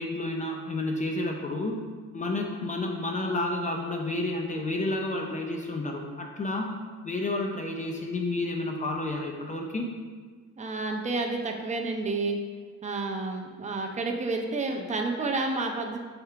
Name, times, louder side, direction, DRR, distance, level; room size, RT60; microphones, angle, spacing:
voice 1, 0.0-1.8 2.1-6.7 7.0-9.9, left 2 dB, 25° left, 1 dB, 0.4 m, -30 dB
voice 2, 10.6-12.4 12.8-16.0, right 3 dB, 25° right, 2 dB, 0.5 m, -30 dB
3.4 x 2.8 x 4.6 m, 1.5 s
cardioid pair, 90°, 30 cm